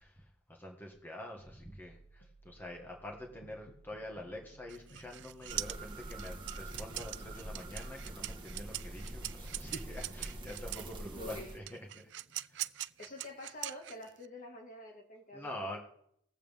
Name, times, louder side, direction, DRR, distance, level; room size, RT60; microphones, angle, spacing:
voice 1, 0.0-12.1 12.5-12.7 15.3-15.8, left 1 dB, 10° left, 1.7 m, -46 dB
sound 1, 1.5-13.4, right 1 dB, 65° left, 2.7 m, -60 dB
sound 2, 4.7-10.9 11.7-14.3, right 15 dB, 70° right, 0.4 m, -42 dB
sound 3, 5.5-11.6, right 1 dB, 25° right, 1.5 m, -44 dB
voice 2, 11.2-11.5 13.0-15.8, left 2 dB, 50° left, 2.3 m, -47 dB
20.0 x 7.5 x 3.6 m
head